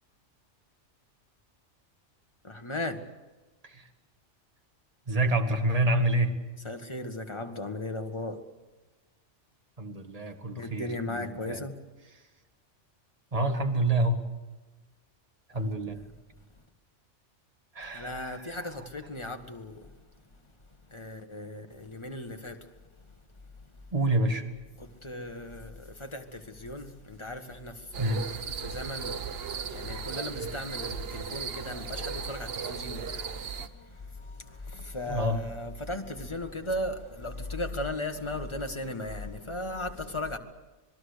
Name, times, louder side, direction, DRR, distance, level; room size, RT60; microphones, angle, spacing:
voice 1, 2.4-3.0 6.6-8.4 10.6-11.8 15.5-16.2 17.8-19.9 20.9-22.7 24.8-28.2 28.6-40.4, left 1 dB, 25° left, 1.7 m, -37 dB
voice 2, 5.1-6.4 9.8-11.6 13.3-14.2 15.5-16.0 17.8-18.4 23.9-24.4 28.0-28.2 35.1-35.4, right 1 dB, 30° right, 1.9 m, -27 dB
sound 1, 27.9-33.7, right 7 dB, 55° right, 1.1 m, -37 dB
26.5 x 21.0 x 6.8 m
omnidirectional pair, 1.2 m